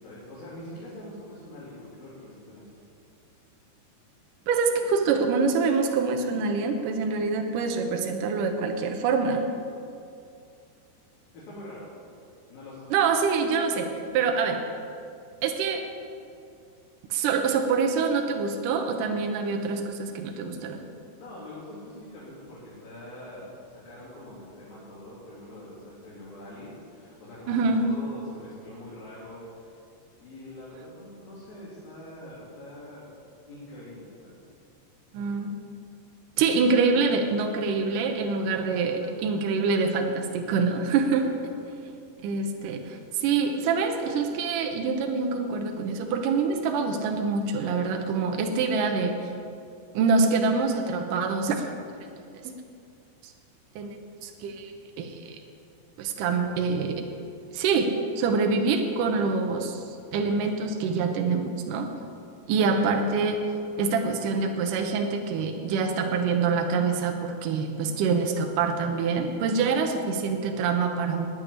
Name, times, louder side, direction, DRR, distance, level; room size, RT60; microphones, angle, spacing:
voice 1, 0.0-2.7 11.3-11.9 12.5-12.9 21.2-29.8 30.2-33.1 33.5-34.4 38.4-38.7 39.0-39.1 41.2-41.5, left 1 dB, 60° left, -9 dB, 4.5 m, -44 dB
voice 2, 4.5-9.5 12.9-14.6 15.4-15.9 17.1-20.9 27.5-27.9 35.1-35.5 36.4-41.3 42.2-49.3 49.9-51.7 52.4-52.5 53.2-53.3 53.8-54.0 54.2-54.7 55.0-55.4 56.0-57.0 57.5-61.9 62.5-63.5 63.8-71.3, right 4 dB, 80° right, 3 dB, 1.9 m, -25 dB
9.6 x 9.5 x 9.9 m, 2.5 s
omnidirectional pair, 5.0 m